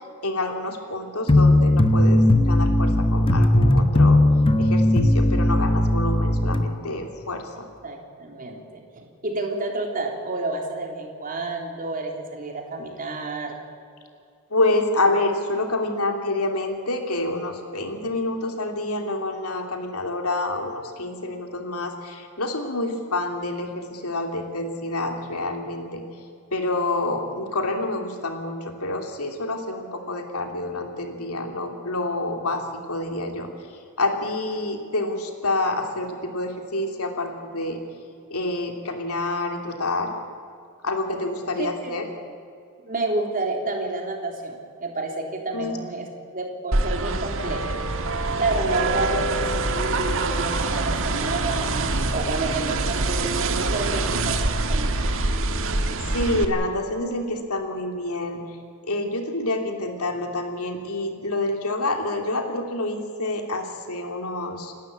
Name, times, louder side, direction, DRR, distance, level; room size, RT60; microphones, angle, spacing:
voice 1, 0.2-4.2 4.6-7.7 14.5-26.0 26.5-32.6 32.9-33.5 34.0-37.8 38.3-40.1 40.8-42.0 45.5-45.8 56.1-58.4 58.8-64.7, left 2 dB, 80° left, 4 dB, 3.0 m, -27 dB
sound 1, 1.3-6.6, left 1 dB, 25° left, 1.2 m, -18 dB
voice 2, 7.8-13.6 41.6-42.3 42.8-47.6 48.4-55.0, right 2 dB, 40° right, 2 dB, 3.6 m, -30 dB
sound 2, 46.7-56.4, right 2 dB, 65° right, 1.6 m, -25 dB
29.0 x 12.5 x 8.7 m, 2.5 s
head